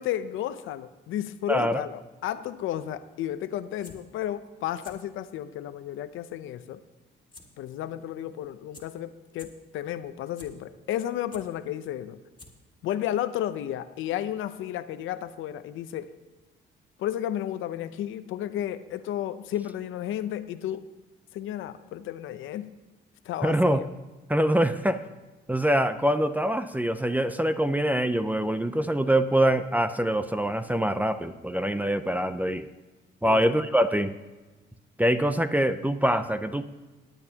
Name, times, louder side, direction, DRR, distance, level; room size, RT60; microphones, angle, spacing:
voice 1, 0.0-6.8 7.6-12.2 12.8-16.1 17.0-20.8 21.3-22.7 23.2-23.9 33.3-33.4, left 11 dB, 85° left, 12 dB, 0.7 m, -33 dB
voice 2, 1.5-1.8 23.4-23.8 24.3-25.0 25.5-32.7 33.2-34.1 35.0-36.6, right 1 dB, 10° right, 10 dB, 0.5 m, -24 dB
sound 1, 3.6-4.0 4.7-4.9 5.4-5.5 7.3-7.4 7.8-7.9 8.4-8.5 8.7-8.8 9.3-9.5 10.0-10.5 11.0-11.4 12.1-12.2 12.4-12.7 13.1-13.2, left 3 dB, 20° left, 2.2 m, -48 dB
19.0 x 9.0 x 2.9 m, 1.2 s
cardioid pair, 90°, 20 cm